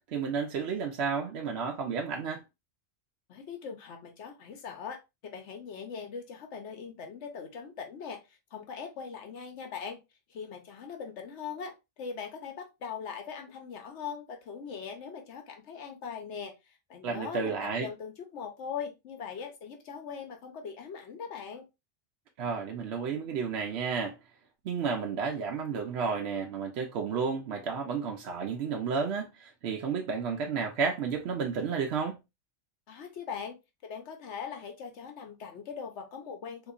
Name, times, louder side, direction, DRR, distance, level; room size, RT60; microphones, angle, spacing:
voice 1, 0.1-2.4 17.0-17.9 22.4-24.2 24.6-32.2, right 5 dB, 65° right, 0.8 m, -32 dB
voice 2, 3.3-5.0 5.3-10.0 10.3-21.6 32.9-33.6 33.8-36.7, left 6 dB, 70° left, 1.2 m, -41 dB
3.8 x 2.9 x 2.3 m
omnidirectional pair, 1.2 m